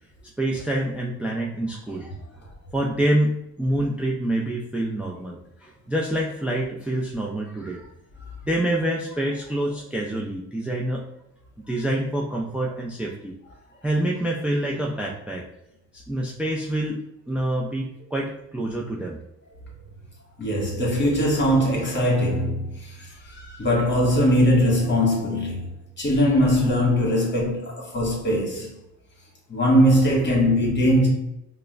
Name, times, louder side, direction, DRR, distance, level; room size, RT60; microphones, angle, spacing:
voice 1, 0.4-2.4 2.7-7.9 8.4-11.0 11.7-13.4 13.8-15.5 15.9-19.2, right 1 dB, 5° right, 0.4 m, -27 dB
voice 2, 20.4-28.7 29.5-31.1, equal, 35° left, 1.4 m, -21 dB
4.7 x 2.1 x 2.4 m
cardioid pair, 90°, 30 cm